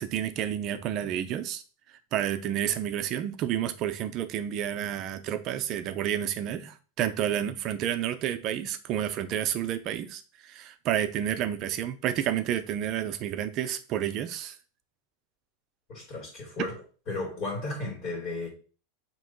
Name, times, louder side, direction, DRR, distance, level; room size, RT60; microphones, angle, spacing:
voice 1, 0.0-1.6 1.9-14.6, right 10 dB, 40° right, 0.6 m, -30 dB
voice 2, 15.9-16.8 17.1-18.5, left 2 dB, 35° left, 2.6 m, -34 dB
6.9 x 3.0 x 4.5 m
supercardioid pair, 150°, 0 cm